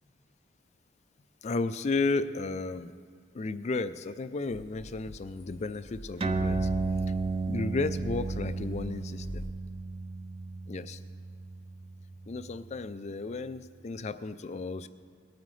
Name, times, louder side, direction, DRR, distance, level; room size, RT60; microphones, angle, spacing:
voice 1, 1.4-2.9 3.3-6.7 7.5-9.4 10.7-11.0 12.3-14.9, left 3 dB, 35° left, 13 dB, 0.4 m, -33 dB
sound 1, 4.5-9.5, equal, 80° left, 0.9 m, -41 dB
sound 2, 6.2-13.1, right 4 dB, 30° right, 0.4 m, -34 dB
19.0 x 9.0 x 3.2 m, 2.1 s
head